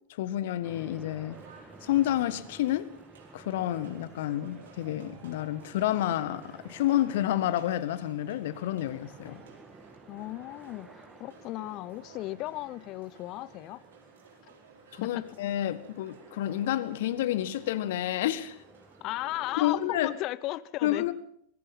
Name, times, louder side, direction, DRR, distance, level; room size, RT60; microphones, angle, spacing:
voice 1, 0.1-1.4 1.8-2.9 3.3-9.4 15.0-18.6 19.6-20.1 20.8-21.1, left 13 dB, 55° left, 1.5 m, -29 dB
sound 1, 0.6-20.1, right 3 dB, 10° right, 1.8 m, -53 dB
sound 2, 1.3-19.1, right 5 dB, 65° right, 4.9 m, -55 dB
voice 2, 10.1-13.8 14.4-14.5 15.0-15.3 19.0-21.1, left 17 dB, 40° left, 0.9 m, -36 dB
25.0 x 21.0 x 5.6 m
figure-of-eight pair, 90°, 0 cm